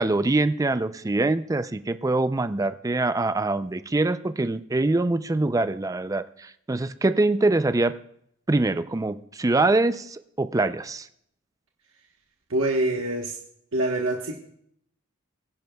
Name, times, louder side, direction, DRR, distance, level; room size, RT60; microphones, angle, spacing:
voice 1, 0.0-7.9 8.5-11.1, right 2 dB, 15° right, 12 dB, 0.4 m, -24 dB
voice 2, 12.5-13.4 13.7-14.4, right 2 dB, 75° right, 1 dB, 1.2 m, -25 dB
23.5 x 10.5 x 2.3 m, 0.72 s
head